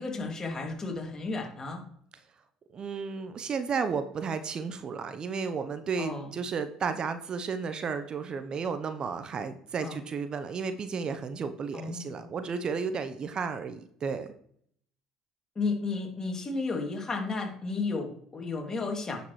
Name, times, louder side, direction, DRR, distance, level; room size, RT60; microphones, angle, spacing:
voice 1, 0.0-1.9 6.0-6.3 9.8-10.0 11.7-12.2 15.6-19.2, left 3 dB, 30° left, 2 dB, 2.5 m, -33 dB
voice 2, 2.7-14.3, right 5 dB, 45° right, 9 dB, 0.9 m, -33 dB
9.8 x 6.8 x 3.2 m, 0.63 s
hypercardioid pair, 60°, 2 cm